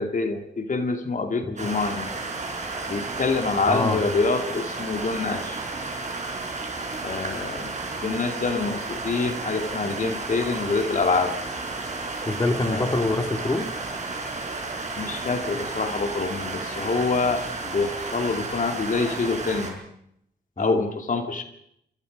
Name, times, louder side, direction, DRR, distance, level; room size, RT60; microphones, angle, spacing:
voice 1, 0.0-2.1 2.9-5.6 7.0-7.7 8.0-11.4 12.6-13.0 15.0-19.8 20.6-21.4, left 4 dB, 50° left, 5 dB, 2.5 m, -26 dB
sound 1, 1.6-19.7, right 3 dB, 40° right, 6.1 m, -32 dB
voice 2, 3.7-4.0 12.3-13.7 20.6-20.8, left 2 dB, 20° left, 5 dB, 2.5 m, -25 dB
26.5 x 25.5 x 5.3 m, 0.74 s
wide cardioid pair, 115°, 18 cm